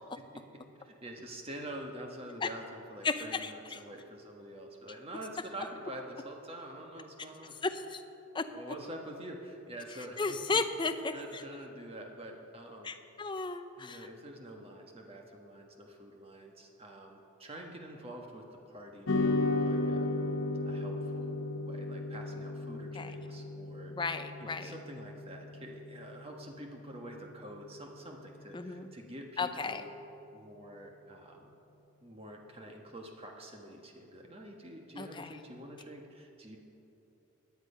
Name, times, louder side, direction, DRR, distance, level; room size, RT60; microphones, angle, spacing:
voice 1, 0.8-7.5 8.5-10.6 11.1-12.9 13.8-20.1 20.6-23.9 24.4-29.9 30.3-31.5 32.0-36.6, right 1 dB, 25° right, 1 dB, 1.4 m, -46 dB
voice 2, 3.0-3.8 7.6-8.0 8.3-8.5 10.2-11.4 12.8-14.1 22.9-23.1 23.9-24.7 28.5-28.9 29.4-29.8 35.0-35.3, left 4 dB, 20° left, 9 dB, 0.6 m, -34 dB
sound 1, 19.1-27.6, left 2 dB, 55° left, 0.9 m, -35 dB
16.5 x 10.5 x 5.6 m, 2.9 s
head